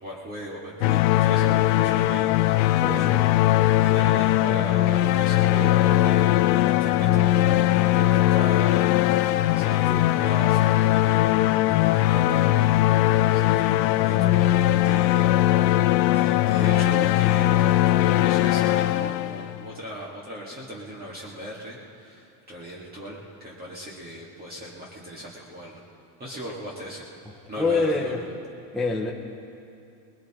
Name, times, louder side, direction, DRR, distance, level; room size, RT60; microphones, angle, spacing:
voice 1, 0.0-3.4 3.8-12.9 13.3-15.9 16.1-25.8 26.2-27.1 27.5-28.2, equal, 20° right, -5 dB, 1.7 m, -38 dB
sound 1, 0.8-19.7, left 14 dB, 85° left, 0.7 m, -20 dB
voice 2, 2.7-3.2 9.8-10.1 27.6-28.2 28.7-29.1, left 3 dB, ahead, -1 dB, 0.4 m, -26 dB
21.5 x 21.0 x 3.0 m, 2.5 s
cardioid pair, 160°, 49 cm